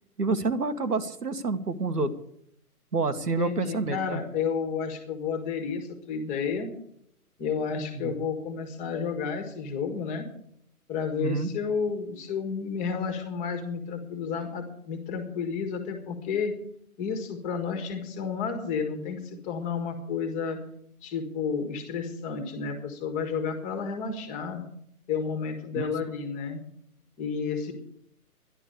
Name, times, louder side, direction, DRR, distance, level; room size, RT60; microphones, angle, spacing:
voice 1, 0.2-2.1 2.9-4.2 7.9-8.2 11.2-11.5 25.7-26.1, right 3 dB, 85° right, 8 dB, 1.8 m, -28 dB
voice 2, 3.4-6.7 7.4-10.2 10.9-16.5 17.0-20.6 21.0-24.6 25.1-26.6 27.2-27.7, left 6 dB, 15° left, 7 dB, 1.6 m, -31 dB
12.5 x 11.0 x 6.8 m, 0.71 s
hypercardioid pair, 145°, 46 cm